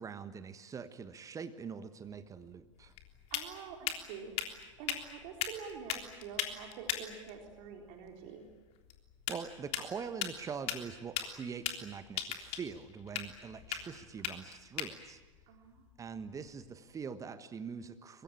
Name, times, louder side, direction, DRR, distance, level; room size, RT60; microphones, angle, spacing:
voice 1, 0.0-2.9 9.3-15.2 16.0-18.2, right 6 dB, 20° right, 12 dB, 1.3 m, -43 dB
sound 1, 2.0-16.8, left 10 dB, 40° left, 3.5 m, -41 dB
voice 2, 3.3-4.3 4.8-8.5 15.5-15.8, right 6 dB, 45° right, 3 dB, 3.9 m, -47 dB
24.5 x 23.5 x 8.9 m, 1.3 s
figure-of-eight pair, 95°, 17 cm